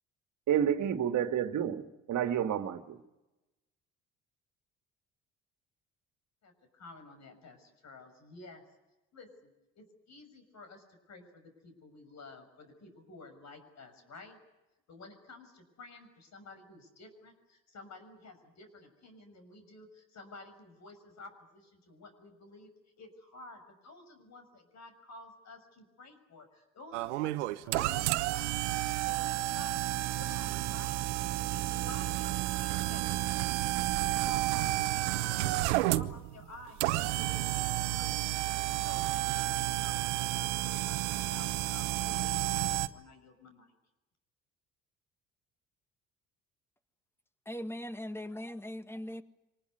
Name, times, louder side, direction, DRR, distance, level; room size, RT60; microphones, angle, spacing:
voice 1, 0.5-3.0, right 9 dB, 55° right, 8 dB, 2.1 m, -30 dB
voice 2, 6.4-8.6 9.1-14.4 14.9-22.7 23.0-28.5 29.0-31.0 31.3-33.8 34.1-38.1 38.8-43.7, left 2 dB, 50° left, 8 dB, 6.4 m, -52 dB
sound 1, 26.9-42.9, right 17 dB, 85° right, 0.9 m, -31 dB
voice 3, 47.5-49.2, left 1 dB, 5° left, 11 dB, 1.8 m, -40 dB
25.0 x 19.5 x 9.7 m, 1.0 s
hypercardioid pair, 60°, 34 cm